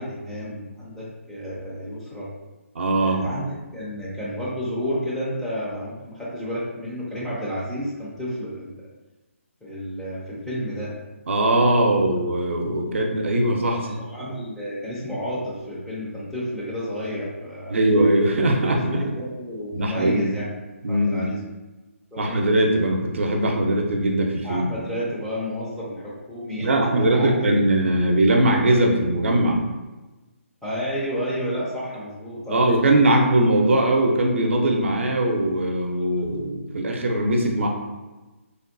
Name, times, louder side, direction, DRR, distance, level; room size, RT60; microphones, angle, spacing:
voice 1, 0.0-2.3 3.0-3.5 3.7-8.8 9.6-10.9 13.8-17.8 18.7-20.4 20.9-21.4 22.1-22.4 24.4-27.5 30.6-32.7, equal, ahead, -9 dB, 0.4 m, -31 dB
voice 2, 2.7-3.3 11.3-13.9 17.7-19.0 19.7-20.3 20.8-21.3 22.2-24.6 26.6-29.6 32.5-37.7, right 1 dB, 60° right, 1 dB, 0.6 m, -20 dB
3.4 x 2.2 x 2.5 m, 1.2 s
figure-of-eight pair, 145°, 8 cm